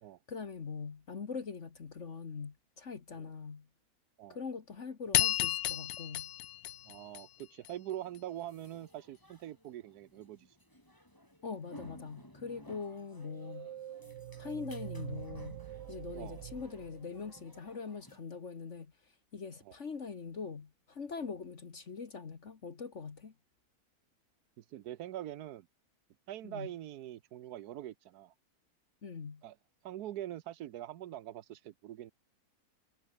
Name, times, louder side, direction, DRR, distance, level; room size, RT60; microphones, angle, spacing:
voice 1, 0.3-3.7 4.3-6.3 11.4-13.7 14.4-15.6 15.9-23.3 26.4-26.7 29.0-29.4, left 5 dB, 50° left, 1.8 m, -42 dB
sound 1, 5.1-7.7, left 15 dB, 90° left, 1.1 m, -32 dB
voice 2, 6.9-10.6 16.1-16.4 19.7-19.8 24.6-25.7 26.3-28.3 29.4-29.6 29.8-32.1, right 12 dB, 90° right, 1.3 m, -44 dB
sound 2, 8.0-18.2, equal, 15° left, 6.6 m, -58 dB
sound 3, 13.1-17.8, right 11 dB, 60° right, 0.9 m, -46 dB
omnidirectional pair, 1.6 m